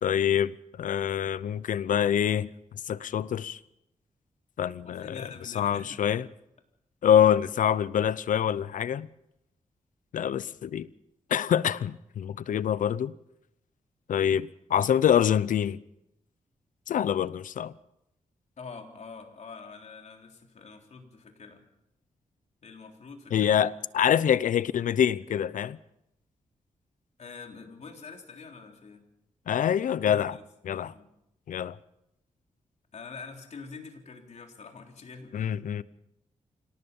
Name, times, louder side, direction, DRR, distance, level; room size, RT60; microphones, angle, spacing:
voice 1, 0.0-2.5 2.9-3.6 4.6-5.2 5.5-6.2 7.0-9.1 10.1-10.9 11.3-13.1 14.1-15.8 16.9-17.7 23.3-25.8 29.5-30.4 30.6-30.9 31.5-31.8 35.3-35.8, left 9 dB, 85° left, 0.7 m, -25 dB
voice 2, 4.8-6.2 18.6-21.7 22.6-23.5 27.2-29.1 30.0-31.1 32.9-35.6, left 5 dB, 60° left, 3.8 m, -45 dB
26.0 x 18.0 x 5.5 m
cardioid pair, 100°, 13 cm